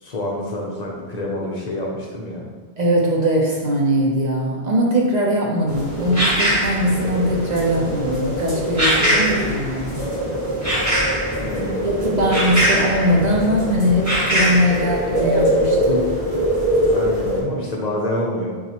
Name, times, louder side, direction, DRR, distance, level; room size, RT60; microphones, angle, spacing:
voice 1, 0.0-2.5 11.4-11.8 16.9-18.6, left 1 dB, 45° left, -2 dB, 0.7 m, -27 dB
voice 2, 2.8-9.9 11.8-16.2, equal, 50° right, -2 dB, 0.6 m, -20 dB
sound 1, 5.7-17.4, equal, 15° right, 1.3 m, -21 dB
6.9 x 2.4 x 2.9 m, 1.5 s
omnidirectional pair, 1.0 m